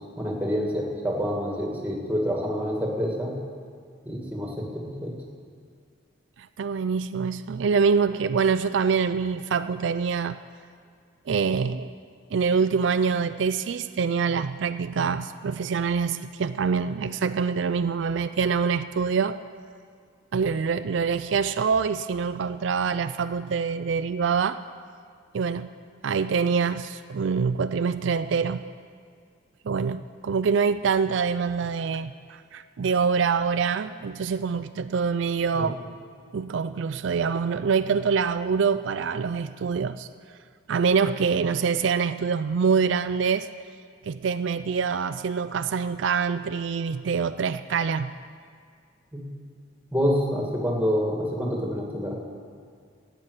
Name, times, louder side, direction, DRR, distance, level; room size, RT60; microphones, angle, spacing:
voice 1, 0.2-3.3 4.1-5.1 35.5-35.7 49.1-49.2 49.9-52.2, equal, 10° right, -1 dB, 2.2 m, -27 dB
voice 2, 6.6-10.4 11.3-11.9 12.3-19.4 20.3-24.6 25.3-25.7 26.0-28.6 29.7-35.8 36.3-40.1 40.7-43.5 44.0-48.1, right 5 dB, 75° right, 11 dB, 0.4 m, -25 dB
14.5 x 9.1 x 8.1 m, 2.1 s
head